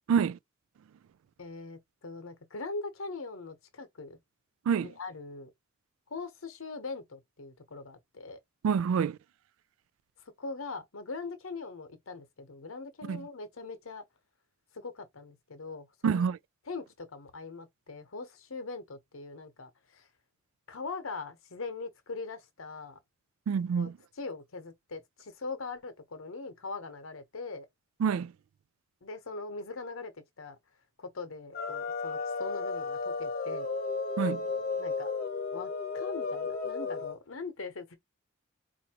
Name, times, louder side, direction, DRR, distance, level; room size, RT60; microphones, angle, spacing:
voice 1, 0.1-0.4 4.7-4.9 8.6-9.2 13.1-13.3 16.0-16.4 23.5-23.9 28.0-28.3 34.2-34.4, right 7 dB, 85° right, 0.3 m, -27 dB
voice 2, 1.4-4.2 4.8-5.5 6.1-8.4 10.4-14.0 14.7-16.3 16.7-20.1 20.7-23.0 23.8-23.9 24.2-27.7 29.0-30.1 30.4-30.6 31.0-33.7 34.8-35.1 35.5-38.0, left 3 dB, 80° left, 0.9 m, -41 dB
sound 1, 31.5-37.2, left 4 dB, 45° left, 0.7 m, -34 dB
4.3 x 2.6 x 2.9 m
head